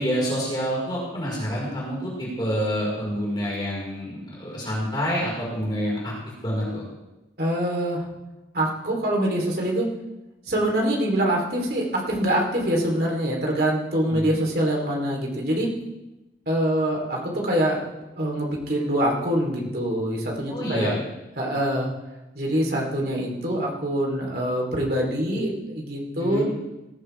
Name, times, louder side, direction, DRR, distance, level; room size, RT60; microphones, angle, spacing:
voice 1, 0.0-6.8 14.0-14.3 20.5-21.0 26.2-26.4, equal, 25° left, -5 dB, 4.8 m, -27 dB
voice 2, 7.4-8.1 8.5-9.9 10.5-15.7 16.5-17.8 18.2-21.0 21.4-21.9 22.3-26.4, right 1 dB, 55° right, -1 dB, 3.5 m, -24 dB
18.5 x 14.5 x 3.5 m, 1.0 s
head